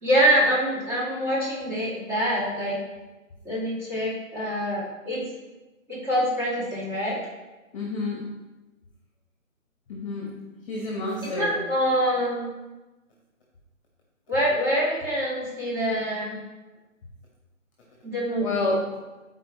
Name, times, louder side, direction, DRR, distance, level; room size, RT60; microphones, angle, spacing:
voice 1, 0.0-2.8 3.4-5.2 5.9-7.2 11.4-12.4 14.3-16.4 18.0-18.8, equal, 15° right, -8 dB, 2.1 m, -25 dB
voice 2, 7.7-8.2 9.9-10.3 10.7-11.5 18.4-18.8, left 2 dB, 25° left, -3 dB, 1.4 m, -28 dB
12.0 x 4.5 x 3.2 m, 1.1 s
hypercardioid pair, 165°, 40 cm